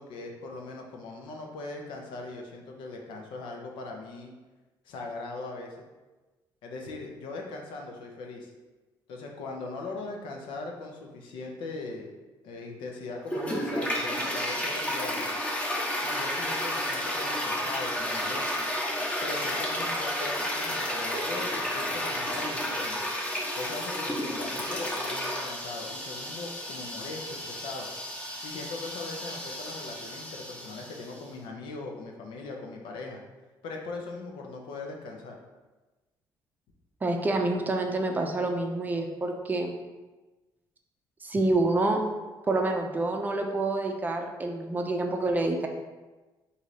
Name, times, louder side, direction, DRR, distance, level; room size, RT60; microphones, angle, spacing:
voice 1, 0.0-4.3 4.8-5.8 6.6-8.5 9.1-12.1 12.4-15.3 16.0-18.5 19.2-23.1 23.6-27.9 28.4-33.2 33.6-35.3, left 3 dB, 80° left, 1 dB, 0.8 m, -40 dB
Toilet flush, 13.3-31.2, equal, 15° left, 0.9 m, -32 dB
voice 2, 37.0-39.7 41.2-42.0 42.5-45.7, right 2 dB, 20° right, 3 dB, 0.5 m, -27 dB
4.0 x 2.8 x 4.8 m, 1.2 s
cardioid pair, 120°, 8 cm